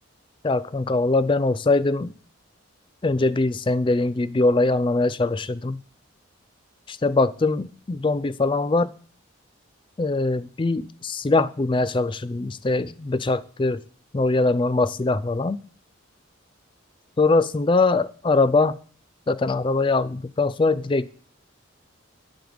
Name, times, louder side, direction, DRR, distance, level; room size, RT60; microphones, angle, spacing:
voice 1, 0.4-2.1 3.0-5.8 6.9-8.9 10.0-13.8 14.1-15.6 17.2-18.8 19.3-21.1, left 3 dB, 25° left, 14 dB, 0.4 m, -22 dB
9.5 x 7.8 x 5.1 m, 0.43 s
head